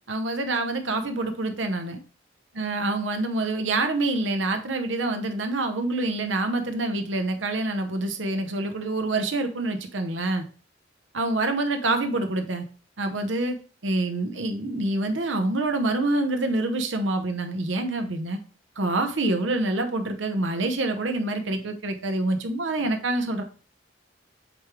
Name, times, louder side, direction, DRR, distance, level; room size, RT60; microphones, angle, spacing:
voice 1, 0.1-2.0 2.6-10.4 11.1-12.6 13.0-13.6 13.8-18.4 18.8-23.4, right 2 dB, 85° right, 6 dB, 0.9 m, -26 dB
7.8 x 3.3 x 3.6 m, 0.38 s
head